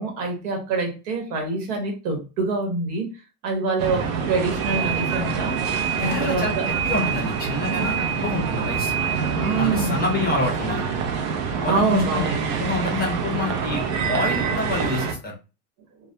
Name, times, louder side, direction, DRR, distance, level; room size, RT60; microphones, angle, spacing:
voice 1, 0.0-3.1 3.4-5.7 6.0-6.7 9.2-10.1 11.7-12.4, right 3 dB, 70° right, 1.1 m, -25 dB
sound 1, 3.8-15.1, right 6 dB, 55° right, 0.6 m, -26 dB
voice 2, 6.0-8.9 9.5-10.8 11.6-15.4, left 2 dB, 20° left, 0.6 m, -27 dB
2.2 x 2.1 x 2.7 m
supercardioid pair, 130°, 46 cm